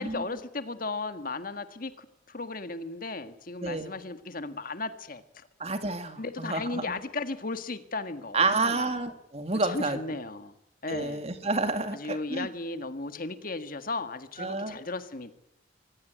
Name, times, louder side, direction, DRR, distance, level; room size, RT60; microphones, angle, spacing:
voice 1, 0.0-5.4 6.2-8.9 9.6-10.5 10.8-11.2 11.9-15.3, left 3 dB, 45° left, 10 dB, 1.6 m, -35 dB
voice 2, 3.6-3.9 5.6-6.9 8.3-10.0 10.9-12.5 14.4-14.8, right 3 dB, 30° right, 8 dB, 2.2 m, -29 dB
24.5 x 16.5 x 9.2 m, 0.82 s
head